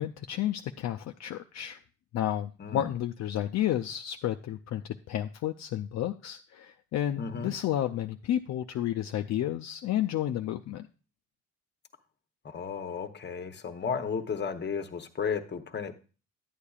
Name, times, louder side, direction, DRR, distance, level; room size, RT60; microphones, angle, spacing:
voice 1, 0.0-1.8 2.1-10.9, left 12 dB, 65° left, 5 dB, 0.5 m, -31 dB
voice 2, 7.2-7.5 12.4-16.0, left 6 dB, 35° left, 8 dB, 0.9 m, -34 dB
11.0 x 8.4 x 2.4 m, 0.36 s
cardioid pair, 90°, 30 cm